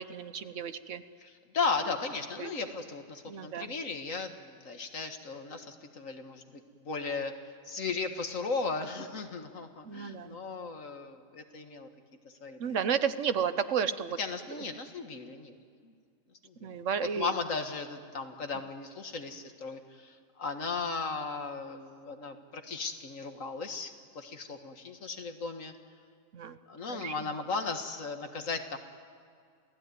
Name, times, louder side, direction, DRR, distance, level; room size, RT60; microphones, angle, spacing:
voice 1, 0.0-1.0 2.4-2.5 3.3-3.7 9.8-10.4 12.6-14.2 16.6-17.3 26.3-26.6 26.9-27.3, right 7 dB, 75° right, 12 dB, 1.3 m, -32 dB
voice 2, 1.2-7.3 7.6-11.9 12.2-12.8 14.2-15.6 15.8-15.9 16.4-16.7 17.0-25.7 26.7-28.8, left 4 dB, 85° left, 6 dB, 2.1 m, -36 dB
28.0 x 17.0 x 9.4 m, 2.2 s
omnidirectional pair, 1.3 m